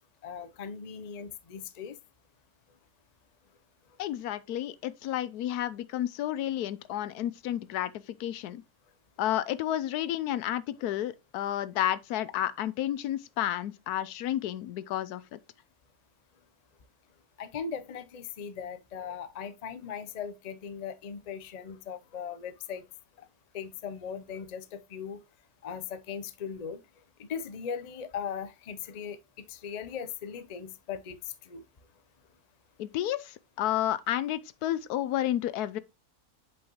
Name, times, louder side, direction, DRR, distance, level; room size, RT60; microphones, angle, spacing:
voice 1, 0.2-2.0 17.4-22.8 23.5-25.2 25.6-26.8 27.2-29.2 29.5-31.2 31.5-31.6, left 7 dB, 50° left, 0.5 m, -38 dB
voice 2, 4.0-8.6 9.2-15.4 32.8-35.8, left 12 dB, 85° left, 1.1 m, -31 dB
7.8 x 5.5 x 2.9 m
omnidirectional pair, 1.6 m